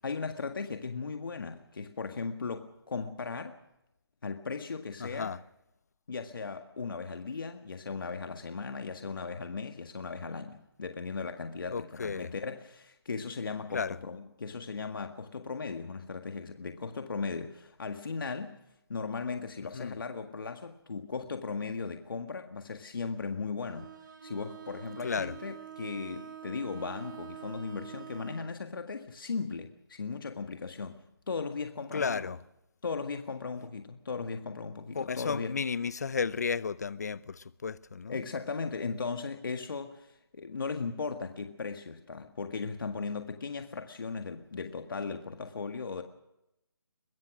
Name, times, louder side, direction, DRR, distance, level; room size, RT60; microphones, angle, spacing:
voice 1, 0.0-3.6 4.2-5.3 6.1-18.6 18.9-23.9 24.2-31.0 31.3-32.3 32.8-35.5 38.1-46.0, left 4 dB, 55° left, 1.7 m, -37 dB
voice 2, 5.0-5.4 11.7-12.3 13.7-14.0 19.7-20.0 25.0-25.3 31.9-32.4 34.9-38.2, left 5 dB, 40° left, 0.7 m, -33 dB
Bowed string instrument, 23.6-28.6, right 10 dB, 50° right, 2.1 m, -46 dB
22.5 x 21.5 x 6.1 m
hypercardioid pair, 170°, 13 cm